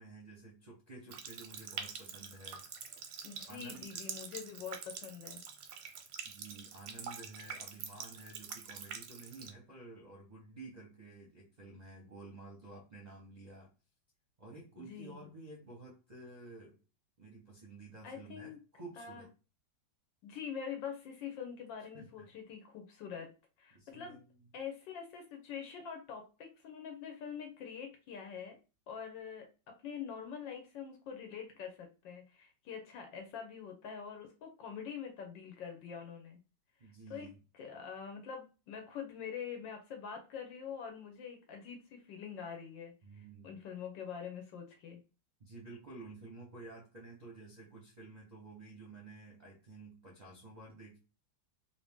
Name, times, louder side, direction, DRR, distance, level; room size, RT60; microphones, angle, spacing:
voice 1, 0.0-2.6 3.0-3.1 3.4-4.0 6.2-13.7 14.4-16.8 17.2-19.3 21.8-22.3 23.7-24.4 36.8-37.4 43.0-43.6 45.4-51.0, right 2 dB, 40° right, -5 dB, 0.6 m, -52 dB
Water tap faucet, 1.1-9.5, right 7 dB, 85° right, 1.3 m, -46 dB
voice 2, 3.2-5.4 14.8-15.2 18.0-18.6 19.0-19.2 20.2-23.3 23.6-24.2 24.5-28.6 28.9-36.4 36.8-37.3 37.5-45.0, left 7 dB, 75° left, 4 dB, 1.4 m, -45 dB
3.2 x 2.6 x 3.5 m, 0.33 s
omnidirectional pair, 2.0 m